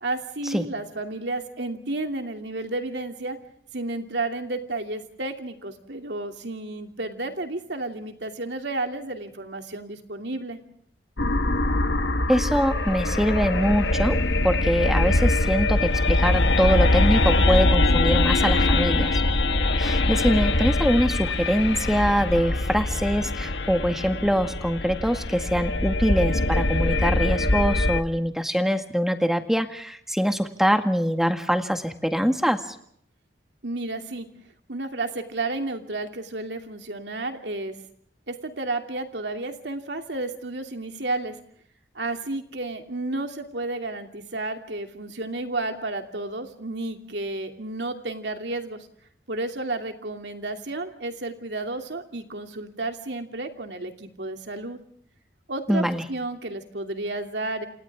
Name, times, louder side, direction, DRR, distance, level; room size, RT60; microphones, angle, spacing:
voice 1, 0.0-3.4 3.7-10.6 33.6-34.3 34.7-37.8 38.3-41.4 41.9-48.9 49.3-54.8 55.5-57.7, right 2 dB, 80° right, 5 dB, 2.8 m, -32 dB
sound 1, 11.2-28.0, left 2 dB, 90° left, 1.4 m, -23 dB
voice 2, 12.3-14.2 14.4-19.2 19.8-32.6 55.7-56.0, equal, ahead, 7 dB, 1.8 m, -23 dB
29.5 x 28.0 x 3.6 m, 0.67 s
head